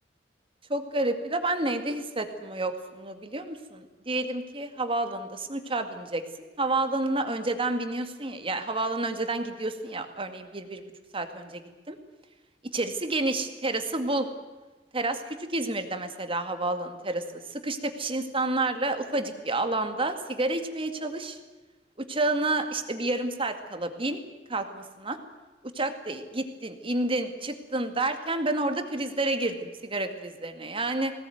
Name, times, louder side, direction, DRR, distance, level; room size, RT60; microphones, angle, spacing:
voice 1, 0.7-10.8 11.1-11.6 11.9-12.0 12.7-14.3 14.9-15.2 15.5-17.2 17.5-21.4 22.1-24.2 24.5-25.2 25.7-31.1, right 2 dB, 30° right, 7 dB, 2.1 m, -29 dB
21.0 x 18.0 x 9.4 m, 1.2 s
head